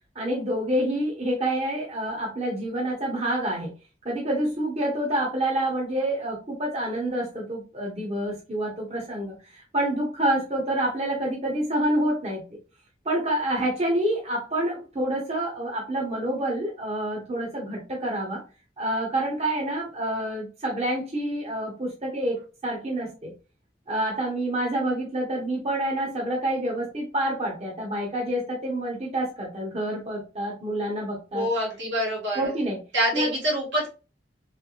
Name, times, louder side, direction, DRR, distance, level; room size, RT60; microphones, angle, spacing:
voice 1, 0.1-3.7 4.0-12.4 13.0-18.4 18.8-23.3 23.9-31.5 32.3-32.8 33.1-33.3, right 1 dB, 35° right, -2 dB, 1.0 m, -27 dB
voice 2, 31.3-32.5 32.9-33.9, equal, 80° right, -3 dB, 1.8 m, -26 dB
3.4 x 3.2 x 2.4 m, 0.32 s
head